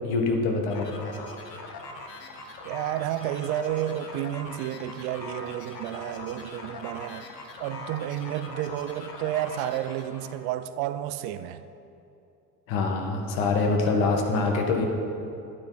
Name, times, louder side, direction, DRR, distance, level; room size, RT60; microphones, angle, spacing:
voice 1, 0.0-1.1 12.7-14.8, left 3 dB, 60° left, 2 dB, 1.9 m, -25 dB
sound 1, 0.7-10.4, left 2 dB, 85° left, 1.3 m, -42 dB
voice 2, 2.6-7.3 7.6-11.6, right 12 dB, 50° right, 12 dB, 0.6 m, -31 dB
11.5 x 9.5 x 4.2 m, 2.7 s
hypercardioid pair, 85°, 48 cm